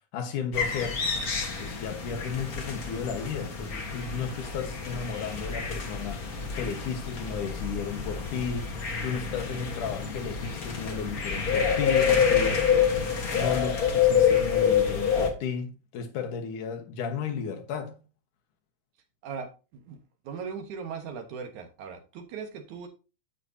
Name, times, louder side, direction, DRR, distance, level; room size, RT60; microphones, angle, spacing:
voice 1, 0.1-1.0 1.6-18.0, left 6 dB, 80° left, 2.8 m, -34 dB
sound 1, 0.5-15.3, left 7 dB, 40° left, 1.3 m, -27 dB
voice 2, 19.2-20.0 20.2-22.9, right 6 dB, 70° right, 2.7 m, -39 dB
10.5 x 8.0 x 2.8 m
omnidirectional pair, 3.6 m